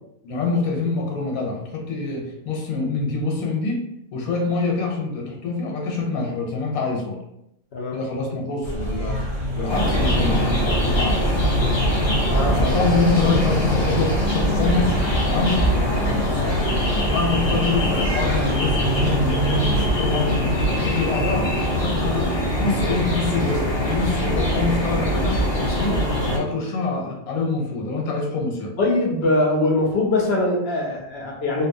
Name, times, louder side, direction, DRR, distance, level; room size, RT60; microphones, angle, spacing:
voice 1, 0.2-3.9 4.1-7.2 7.9-9.2 9.6-11.3 12.5-15.0 15.3-15.7 16.1-16.6 16.9-21.5 21.8-26.1 26.3-28.8, left 3 dB, 85° left, 0 dB, 1.2 m, -25 dB
sound 1, 8.6-19.9, left 1 dB, 30° right, 0.8 m, -29 dB
sound 2, 9.7-26.4, equal, 40° left, 0.4 m, -22 dB
sound 3, 9.7-18.8, right 2 dB, 70° right, 0.5 m, -31 dB
voice 2, 12.2-12.6 28.8-31.7, left 2 dB, 60° left, -1 dB, 0.8 m, -22 dB
2.8 x 2.2 x 2.6 m, 0.81 s
omnidirectional pair, 1.5 m